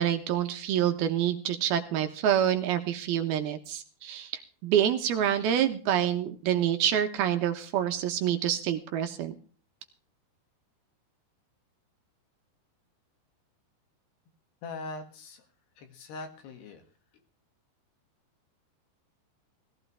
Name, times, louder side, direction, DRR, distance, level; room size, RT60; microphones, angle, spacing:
voice 1, 0.0-9.4, right 10 dB, 70° right, 6 dB, 2.7 m, -27 dB
voice 2, 14.6-15.5 15.8-16.8, left 3 dB, 70° left, 6 dB, 4.0 m, -41 dB
18.0 x 15.0 x 3.4 m, 0.41 s
omnidirectional pair, 5.0 m